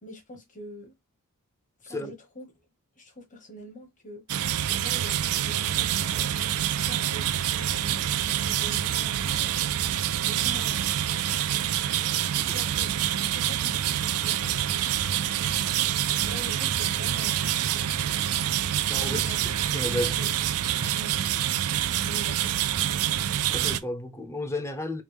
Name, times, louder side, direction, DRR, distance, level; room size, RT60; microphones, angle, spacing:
voice 1, 0.0-0.9 1.8-2.5 3.0-4.2 4.7-6.3 6.6-9.6 10.2-10.8 12.2-15.0 16.1-18.0 18.9-19.3 19.9-20.3 20.9-21.3 22.0-23.0, right 1 dB, 35° left, 1.1 m, -44 dB
sound 1, 4.3-23.8, right 11 dB, 85° right, 0.4 m, -26 dB
voice 2, 18.9-20.3 20.8-21.0 23.5-25.0, left 1 dB, 15° left, 0.6 m, -33 dB
4.8 x 2.0 x 3.3 m
head